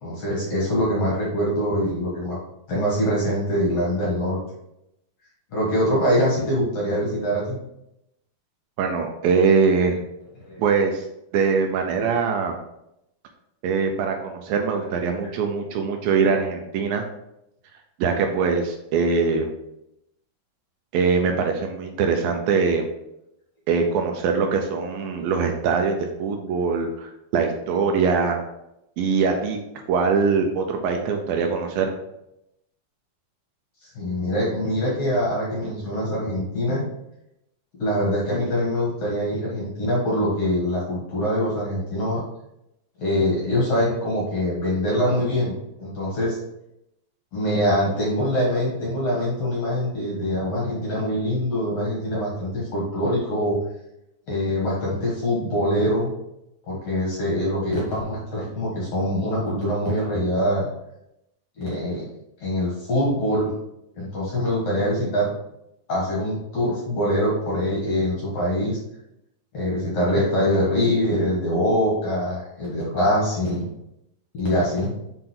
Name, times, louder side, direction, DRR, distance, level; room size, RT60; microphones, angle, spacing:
voice 1, 0.0-2.4 2.7-4.4 5.5-7.6 10.4-10.6 33.8-36.8 37.8-42.2 43.0-46.4 47.3-53.6 54.3-56.1 56.7-60.7 61.6-62.1 62.4-63.5 64.0-65.3 65.9-68.8 69.5-73.7 74.3-74.9, equal, 55° left, -4 dB, 1.9 m, -24 dB
voice 2, 8.8-10.0 10.6-11.0 11.3-12.6 13.6-17.0 18.0-19.5 20.9-22.9 23.7-28.4 29.0-29.6 29.9-31.9, right 5 dB, 75° right, 4 dB, 2.3 m, -22 dB
6.1 x 5.6 x 3.7 m, 0.83 s
omnidirectional pair, 4.4 m